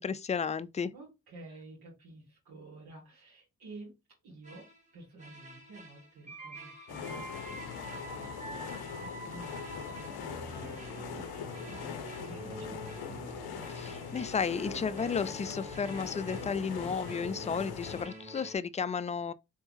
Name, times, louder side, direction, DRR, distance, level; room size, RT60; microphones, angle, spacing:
voice 1, 0.0-0.9 13.7-19.3, left 6 dB, 20° left, 0.3 m, -33 dB
voice 2, 0.9-3.9 4.2-4.7 4.9-10.8 11.1-13.3, right 2 dB, 90° right, 1.7 m, -51 dB
sound 1, 4.4-4.8 5.2-18.6, right 1 dB, 20° right, 1.6 m, -46 dB
sound 2, 6.9-18.1, left 7 dB, 90° left, 0.6 m, -42 dB
3.5 x 3.5 x 3.0 m
supercardioid pair, 50°, 37 cm